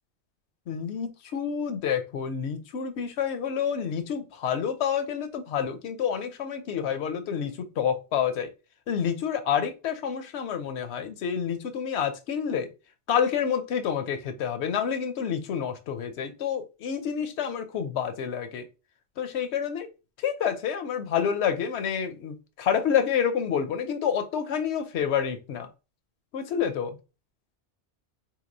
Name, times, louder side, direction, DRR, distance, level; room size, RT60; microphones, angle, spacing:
voice 1, 0.7-8.5 8.9-12.7 13.1-18.7 19.2-19.9 20.2-25.7 26.3-27.0, left 8 dB, 75° left, 0.9 m, -28 dB
3.7 x 2.9 x 2.5 m
omnidirectional pair, 1.1 m